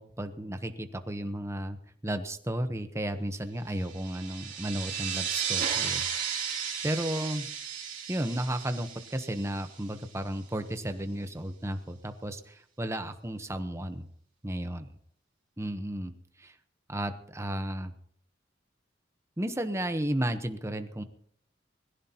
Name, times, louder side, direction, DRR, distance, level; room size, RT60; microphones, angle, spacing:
voice 1, 0.0-1.8 2.0-6.0 6.4-7.5 8.1-14.1 14.4-14.9 15.6-16.1 16.4-16.5 16.9-17.9 19.4-21.0, right 1 dB, 15° right, 8 dB, 1.0 m, -33 dB
sound 1, 3.8-10.0, right 7 dB, 45° right, 3.1 m, -34 dB
21.5 x 15.0 x 2.9 m, 0.65 s
head